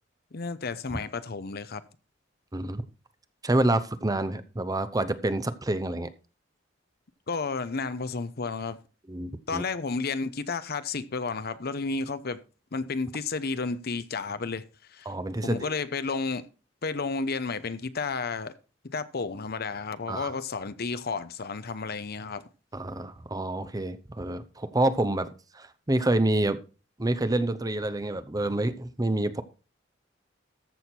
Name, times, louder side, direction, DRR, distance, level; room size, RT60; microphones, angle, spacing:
voice 1, 0.3-1.8 7.3-8.8 9.5-12.4 12.7-14.6 14.9-15.1 15.4-16.4 16.8-18.5 18.8-22.4, left 4 dB, 55° left, 0.8 m, -32 dB
voice 2, 3.4-6.1 9.1-9.6 15.1-15.7 20.1-20.3 22.7-25.3 25.5-26.6 27.0-29.4, right 1 dB, 20° right, 0.8 m, -27 dB
14.0 x 6.4 x 4.4 m
head